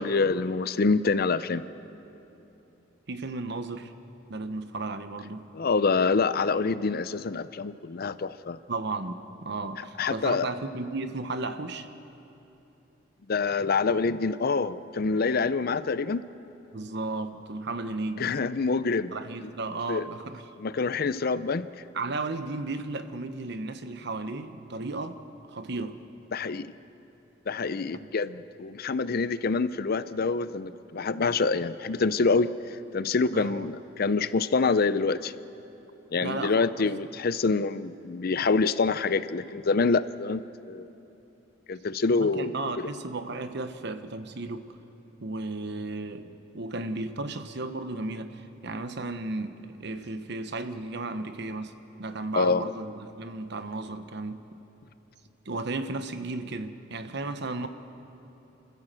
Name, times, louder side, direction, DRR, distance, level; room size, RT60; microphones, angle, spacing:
voice 1, 0.0-1.7 5.5-8.6 10.0-10.5 13.3-16.2 18.2-19.1 19.4-19.5 19.9-20.0 20.6-21.7 26.3-26.7 27.5-32.5 32.9-35.3 36.1-40.9 41.7-42.9 52.3-52.6, left 4 dB, 50° left, 14 dB, 0.6 m, -26 dB
voice 2, 3.1-3.9 4.3-5.4 8.7-11.9 16.7-18.3 19.1-20.4 21.9-25.2 25.5-26.0 27.9-28.1 33.3-33.7 36.2-36.9 42.1-44.7 45.2-51.7 52.0-54.4 55.4-57.7, right 3 dB, 60° right, 9 dB, 1.0 m, -34 dB
27.5 x 14.5 x 7.6 m, 3.0 s
head